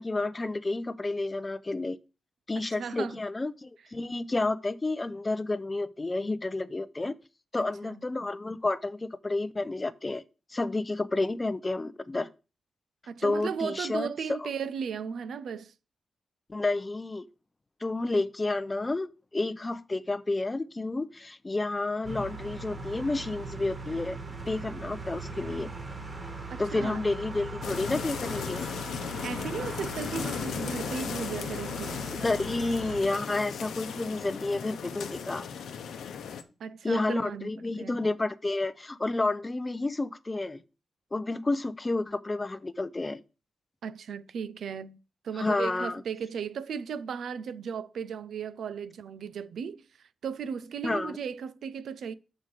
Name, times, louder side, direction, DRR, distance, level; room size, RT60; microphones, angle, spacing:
voice 1, 0.0-2.0 2.5-7.1 7.5-10.2 10.5-12.3 13.2-14.5 16.5-17.2 17.8-24.2 24.5-25.7 26.6-28.6 32.1-35.5 36.8-40.6 41.1-43.2 45.4-46.0 50.8-51.2, left 2 dB, 30° left, 0.6 m, -30 dB
voice 2, 2.6-3.2 7.6-8.0 13.1-15.7 26.5-27.0 29.2-32.0 36.6-37.5 37.8-38.0 43.8-45.0 45.2-52.1, right 6 dB, 80° right, 0.5 m, -36 dB
sound 1, 22.0-33.0, right 2 dB, 35° right, 1.8 m, -40 dB
sound 2, 27.6-36.4, left 7 dB, 90° left, 0.7 m, -36 dB
6.1 x 5.1 x 6.7 m
cardioid pair, 65°, 0 cm